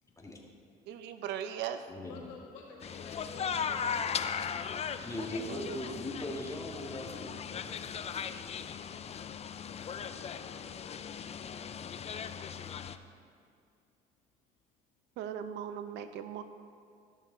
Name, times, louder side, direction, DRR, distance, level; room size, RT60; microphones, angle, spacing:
voice 1, 0.0-1.0 2.0-4.5 10.4-12.0, left 4 dB, 85° left, -2 dB, 1.9 m, -54 dB
voice 2, 0.9-1.8 5.4-5.8 15.2-16.4, right 9 dB, 75° right, 10 dB, 0.6 m, -38 dB
voice 3, 1.9-2.3 5.0-7.9, left 1 dB, 15° left, 0 dB, 1.8 m, -40 dB
sound 1, 2.8-13.0, left 7 dB, 35° left, 0.5 m, -38 dB
13.5 x 6.2 x 3.9 m, 2.3 s
supercardioid pair, 80°, 18 cm